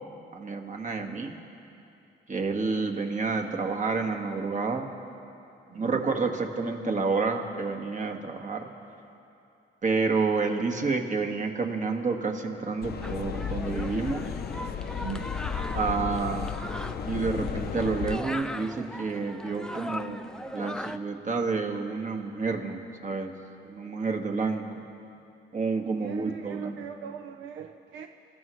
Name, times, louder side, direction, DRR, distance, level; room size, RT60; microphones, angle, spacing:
voice 1, 0.3-1.3 2.3-4.9 5.7-8.7 9.8-14.3 15.7-16.5 17.0-20.3 20.5-23.3 23.6-24.6 25.5-26.7, right 4 dB, 40° right, 3 dB, 1.6 m, -29 dB
voice 2, 5.7-6.0 15.0-15.4 26.0-28.1, right 8 dB, 75° right, 5 dB, 0.6 m, -40 dB
sound 1, 12.8-18.2, left 8 dB, 55° left, 0.6 m, -34 dB
sound 2, 13.0-21.0, left 1 dB, 5° left, 0.5 m, -39 dB
28.0 x 14.0 x 3.1 m, 2.7 s
cardioid pair, 90°, 20 cm